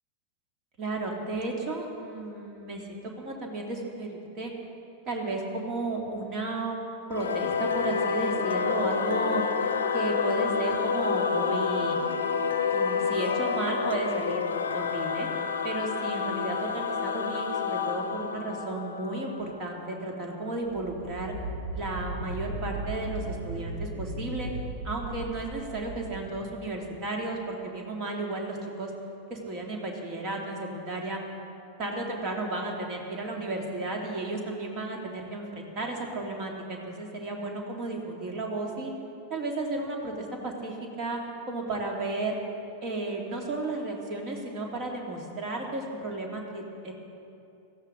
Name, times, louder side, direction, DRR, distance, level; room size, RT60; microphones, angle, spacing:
voice 1, 0.8-4.5 5.1-6.8 7.1-9.4 9.9-12.0 12.7-15.3 15.6-21.3 21.7-24.5 24.8-28.9 29.3-31.2 31.8-38.9 39.3-41.2 41.5-42.4 42.8-46.9, right 2 dB, 35° right, 0 dB, 2.7 m, -33 dB
Singing / Musical instrument, 7.1-20.0, left 6 dB, 65° left, 0.7 m, -29 dB
sound 1, 20.6-27.0, right 2 dB, 70° right, 3.4 m, -37 dB
18.0 x 15.0 x 3.9 m, 2.8 s
figure-of-eight pair, 90°, 0 cm